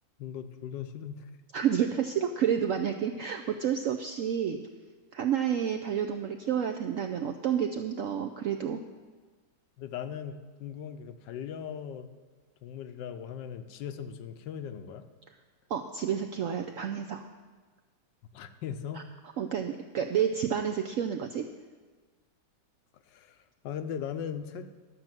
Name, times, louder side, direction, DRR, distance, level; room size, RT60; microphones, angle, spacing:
voice 1, 0.2-1.3 9.8-12.1 12.6-15.1 18.3-19.1 22.9-24.7, left 8 dB, 85° left, 9 dB, 1.4 m, -39 dB
voice 2, 1.5-4.6 5.1-8.8 15.7-17.3 19.4-21.5, right 8 dB, 75° right, 5 dB, 0.7 m, -30 dB
12.0 x 6.3 x 7.5 m, 1.4 s
omnidirectional pair, 1.9 m